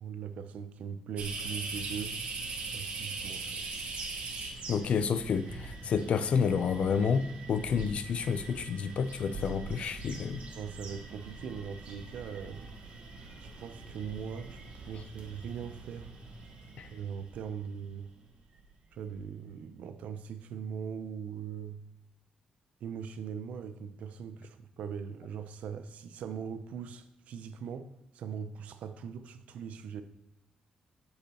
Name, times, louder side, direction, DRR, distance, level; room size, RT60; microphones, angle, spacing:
voice 1, 0.0-2.2 2.7-3.7 10.6-12.7 13.4-16.1 16.9-18.1 18.9-21.8 22.8-30.0, right 7 dB, 85° right, 10 dB, 0.5 m, -40 dB
sound 1, 1.2-18.0 18.6-18.7 19.1-19.3, right 3 dB, 65° right, 1.3 m, -42 dB
voice 2, 4.7-10.4 16.8-16.9, left 6 dB, 60° left, 12 dB, 0.4 m, -29 dB
8.0 x 6.5 x 2.9 m, 0.87 s
wide cardioid pair, 145°, 2 cm